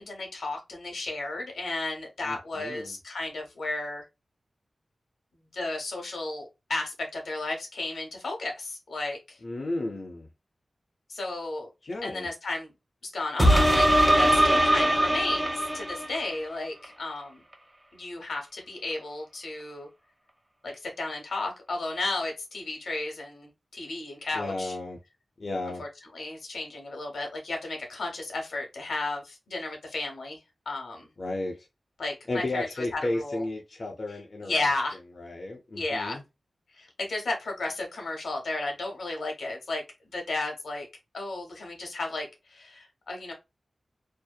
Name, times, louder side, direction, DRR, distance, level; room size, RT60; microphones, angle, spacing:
voice 1, 0.0-4.0 5.5-9.4 11.1-11.7 12.0-12.7 13.1-13.9 14.2-17.4 17.9-19.9 20.6-24.8 25.8-25.9 26.1-30.4 30.7-31.1 32.0-33.4 34.1-35.0 35.7-36.2 36.8-39.8 40.1-40.9 41.1-43.3, left 2 dB, 85° left, 0.8 m, -33 dB
voice 2, 2.2-3.0 9.4-10.3 11.8-12.3 24.3-25.0 25.4-25.8 31.2-31.6 32.3-34.7 35.2-36.2, left 2 dB, 55° left, 0.5 m, -33 dB
sound 1, 13.4-16.3 16.8-16.9, right 1 dB, 25° right, 0.7 m, -21 dB
2.7 x 2.0 x 2.2 m
cardioid pair, 55°, 0 cm